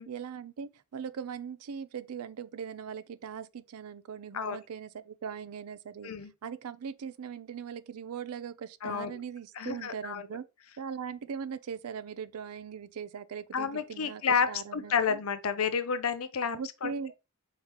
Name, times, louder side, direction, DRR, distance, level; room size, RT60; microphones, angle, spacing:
voice 1, 0.1-6.1 6.4-10.4 10.8-15.2 16.5-17.1, right 7 dB, 80° right, 0.4 m, -40 dB
voice 2, 8.8-9.2 9.6-10.2 13.5-17.1, left 6 dB, 70° left, 0.6 m, -30 dB
4.7 x 3.6 x 2.9 m
head